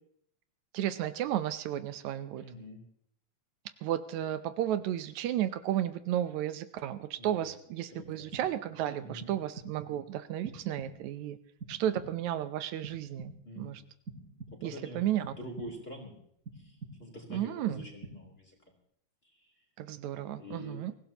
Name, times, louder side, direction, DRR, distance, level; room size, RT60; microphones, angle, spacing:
voice 1, 0.7-2.5 3.8-11.4 11.7-13.8 14.6-15.2 17.3-17.9 19.8-20.9, right 11 dB, 80° right, 11 dB, 2.1 m, -33 dB
voice 2, 2.3-2.8 7.2-7.5 7.9-8.4 9.0-9.4 13.4-13.8 14.6-16.1 16.6-18.5 20.4-20.8, left 1 dB, 20° left, 0 dB, 3.3 m, -45 dB
sound 1, 8.0-8.8 9.2-9.9 10.4-11.2 11.6-12.4 12.8-13.6 14.1-14.9 15.2-16.0 16.5-17.3 17.7-18.5, right 3 dB, 30° right, 4.1 m, -47 dB
24.0 x 16.0 x 2.9 m, 0.69 s
omnidirectional pair, 3.3 m